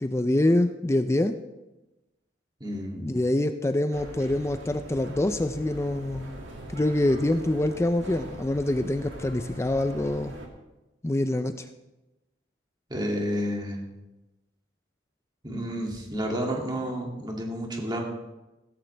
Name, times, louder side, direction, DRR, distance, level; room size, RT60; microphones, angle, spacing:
voice 1, 0.0-1.4 2.9-6.4 6.7-10.3 11.0-11.7, left 1 dB, 15° left, 8 dB, 0.5 m, -25 dB
voice 2, 2.6-3.1 12.9-13.8 15.4-18.0, equal, 25° right, 0 dB, 2.5 m, -30 dB
sound 1, 3.9-10.5, right 1 dB, 75° right, 2.3 m, -42 dB
16.0 x 14.0 x 3.4 m, 1.0 s
head